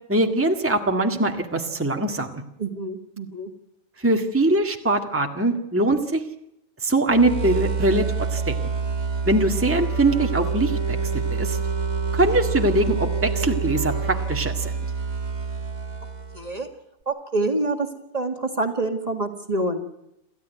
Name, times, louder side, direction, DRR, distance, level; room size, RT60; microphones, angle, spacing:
voice 1, 0.1-2.4 4.0-6.2 6.8-8.1 8.3-8.6 9.3-11.6 12.1-14.7, right 2 dB, 10° right, 3 dB, 1.8 m, -22 dB
voice 2, 2.6-3.5 16.3-16.7 17.1-19.8, right 2 dB, 30° right, 5 dB, 2.0 m, -27 dB
sound 1, 7.1-16.6, right 5 dB, 85° right, 2.7 m, -27 dB
28.0 x 14.5 x 9.3 m, 0.83 s
omnidirectional pair, 1.4 m